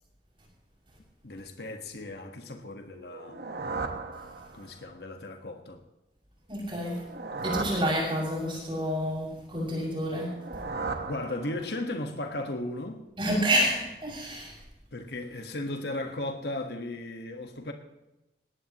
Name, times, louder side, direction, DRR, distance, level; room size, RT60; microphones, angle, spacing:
voice 1, 1.2-3.6 4.5-5.8 11.1-13.0 14.9-17.7, left 2 dB, 70° left, 1.6 m, -36 dB
sound 1, 3.0-4.9 6.8-8.7 10.1-12.0, right 4 dB, 60° right, 1.4 m, -37 dB
voice 2, 6.5-7.0 7.4-10.3 13.2-14.5, equal, 30° right, 6.6 m, -28 dB
20.0 x 17.5 x 3.1 m
head